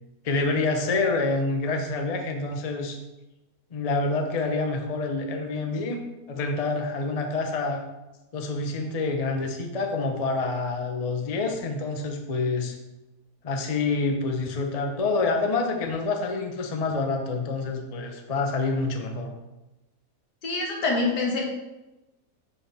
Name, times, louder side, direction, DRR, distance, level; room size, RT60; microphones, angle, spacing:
voice 1, 0.2-3.0 3.7-7.8 8.3-12.7 13.4-19.3, left 3 dB, 30° left, 3 dB, 0.7 m, -27 dB
voice 2, 20.4-21.4, left 3 dB, 90° left, -1 dB, 2.1 m, -25 dB
8.2 x 7.1 x 3.5 m, 1.0 s
omnidirectional pair, 1.8 m